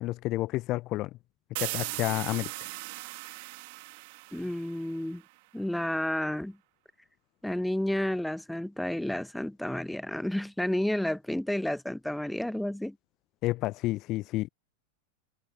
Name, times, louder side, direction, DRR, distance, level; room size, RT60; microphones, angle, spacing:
voice 1, 0.0-1.1 1.6-2.7 13.4-14.5, left 17 dB, 35° left, 1.0 m, -30 dB
sound 1, 1.6-5.2, right 26 dB, 50° right, 2.2 m, -38 dB
voice 2, 4.3-5.2 5.5-6.6 7.4-13.0, left 1 dB, ahead, 1.2 m, -31 dB
figure-of-eight pair, 90°, 0 cm